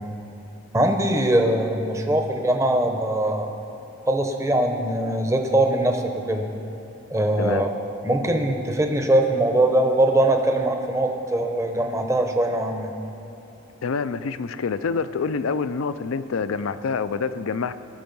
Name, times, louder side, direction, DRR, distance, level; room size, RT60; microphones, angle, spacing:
voice 1, 0.7-3.5 4.1-6.5 7.1-7.7 8.0-12.9, right 1 dB, 15° right, 4 dB, 0.7 m, -21 dB
voice 2, 7.4-7.7 13.8-17.7, left 5 dB, 70° left, 12 dB, 0.4 m, -26 dB
18.5 x 6.4 x 5.4 m, 2.9 s
head